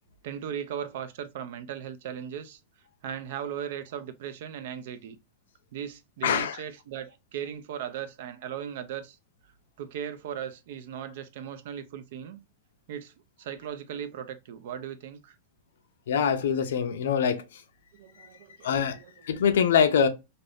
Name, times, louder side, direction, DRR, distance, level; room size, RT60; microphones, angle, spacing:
voice 1, 0.2-2.6 3.0-5.2 5.7-9.2 9.8-12.4 12.9-13.1 13.4-15.4 18.0-19.1, right 9 dB, 50° right, 0.4 m, -37 dB
voice 2, 6.2-6.6 16.1-17.6 18.2-18.3 18.6-20.1, left 7 dB, 80° left, 0.6 m, -24 dB
2.6 x 2.5 x 3.4 m
supercardioid pair, 175°, 0 cm